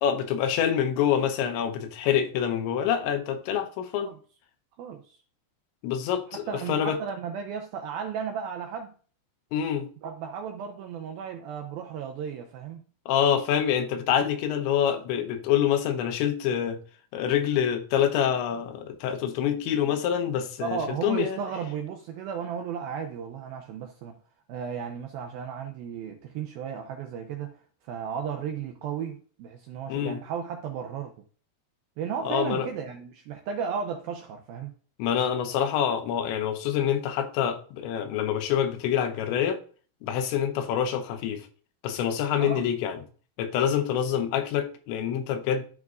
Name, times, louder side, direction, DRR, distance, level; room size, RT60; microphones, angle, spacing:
voice 1, 0.0-4.1 5.8-6.4 6.7-7.0 9.5-9.9 13.1-16.8 17.1-21.4 29.9-30.2 32.3-32.7 35.0-39.6 40.0-41.5 41.8-43.0 43.4-45.7, left 9 dB, 90° left, 3.2 m, -26 dB
voice 2, 4.8-5.2 6.3-8.9 10.0-12.8 20.6-24.2 24.5-31.1 32.0-34.7 42.4-42.6, right 7 dB, 80° right, 2.1 m, -34 dB
13.0 x 4.8 x 2.4 m
omnidirectional pair, 5.1 m